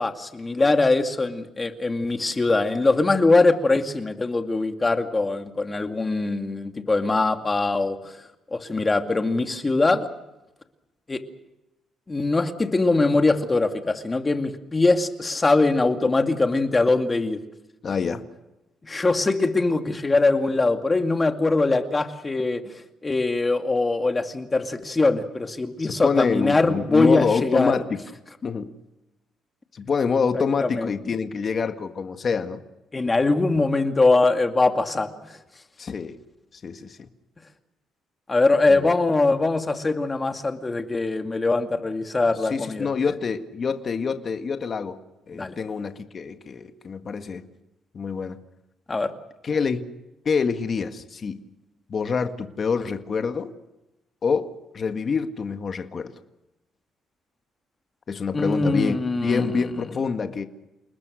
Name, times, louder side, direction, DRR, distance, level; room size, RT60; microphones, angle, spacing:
voice 1, 0.0-8.1 8.5-10.1 11.1-11.2 12.1-17.4 18.8-22.6 23.0-27.7 30.3-30.9 32.9-35.1 38.3-42.9 45.3-45.5 48.9-49.1 58.3-59.6, left 3 dB, 20° left, 6 dB, 2.3 m, -22 dB
voice 2, 17.8-18.2 25.8-28.0 28.4-28.7 29.7-32.6 35.8-36.2 36.6-37.0 38.7-38.9 42.5-45.0 45.3-47.4 47.9-48.4 49.4-49.9 50.2-51.4 51.9-53.5 54.2-56.1 58.1-60.5, left 5 dB, 40° left, 7 dB, 1.8 m, -26 dB
29.0 x 20.0 x 6.5 m, 0.96 s
cardioid pair, 125°, 0 cm